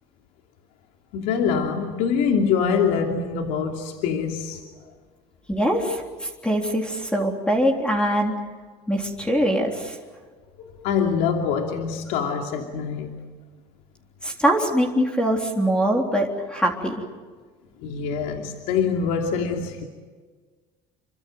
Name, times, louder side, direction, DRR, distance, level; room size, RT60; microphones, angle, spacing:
voice 1, 1.1-4.6 10.6-13.2 17.8-19.8, left 6 dB, 75° left, 2 dB, 2.9 m, -24 dB
voice 2, 5.5-8.3 8.9-10.0 14.2-17.0, equal, 5° left, 1 dB, 3.6 m, -23 dB
29.0 x 24.5 x 7.9 m, 1.5 s
cardioid pair, 120°, 14 cm